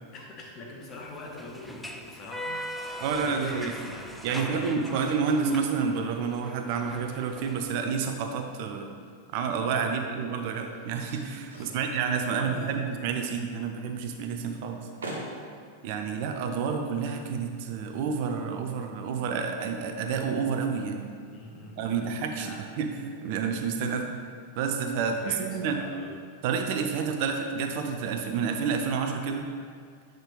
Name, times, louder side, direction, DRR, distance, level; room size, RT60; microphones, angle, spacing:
voice 1, 0.1-2.6 3.2-5.1 9.8-10.1 11.5-11.8 12.2-12.8 21.3-22.7 23.9-24.0 25.1-26.1, left 2 dB, 30° left, -1 dB, 1.2 m, -43 dB
sound 1, 0.9-8.1, equal, ahead, 0.5 m, -41 dB
voice 2, 3.0-3.7 4.2-8.9 9.3-14.8 15.8-21.1 21.8-24.1 24.5-25.8 26.4-29.5, right 6 dB, 50° right, 5 dB, 0.5 m, -29 dB
sound 2, 9.6-18.5, right 1 dB, 70° right, 1.0 m, -48 dB
8.9 x 5.1 x 3.2 m, 2.1 s
figure-of-eight pair, 90°, 0 cm